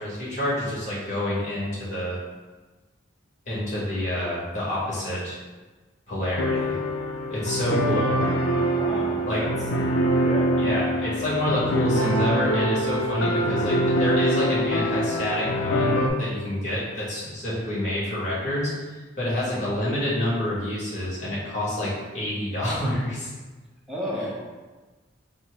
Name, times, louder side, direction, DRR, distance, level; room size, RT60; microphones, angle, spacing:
voice 1, 0.0-2.2 3.4-5.4 6.1-6.8 7.3-8.2 9.3-9.4 10.6-18.7 19.2-23.3, left 1 dB, 40° left, -7 dB, 1.5 m, -27 dB
sound 1, 6.4-16.1, equal, 70° left, 0.5 m, -24 dB
voice 2, 8.7-9.5 10.2-10.6 13.3-13.6 14.8-15.0 19.4-19.6 23.9-24.4, equal, ahead, -6 dB, 0.8 m, -33 dB
4.4 x 2.1 x 4.6 m, 1.3 s
head